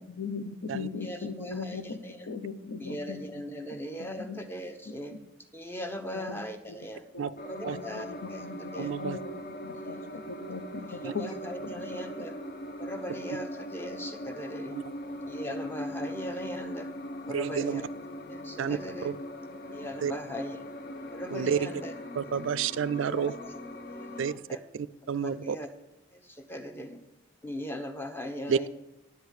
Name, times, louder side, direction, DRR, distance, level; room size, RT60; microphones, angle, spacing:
voice 1, 0.1-2.0 2.3-3.2 4.0-4.4 4.9-5.0 6.1-6.4 6.7-6.8 7.1-7.4 7.6-11.3 11.6-12.3, left 4 dB, 85° left, 10 dB, 0.8 m, -39 dB
voice 2, 1.0-2.3 2.8-5.1 5.5-7.0 7.4-8.9 9.7-10.1 10.9-12.3 12.8-14.8 15.3-16.9 17.2-17.9 18.3-19.1 19.7-20.6 21.1-21.9 22.3-22.4 23.1-23.5 23.9-24.6 25.2-25.7 26.1-27.0 27.4-28.7, equal, 10° left, 7 dB, 0.8 m, -39 dB
sound 1, 7.4-24.3, equal, 45° left, 0.7 m, -40 dB
voice 3, 8.8-9.2 11.0-11.1 14.7-14.8 17.3-17.8 18.6-19.2 20.0-20.1 21.3-21.7 22.2-23.3 24.2-24.3 24.7-25.6 28.5-28.7, right 7 dB, 70° right, 18 dB, 0.3 m, -30 dB
10.5 x 4.9 x 8.2 m, 1.0 s
head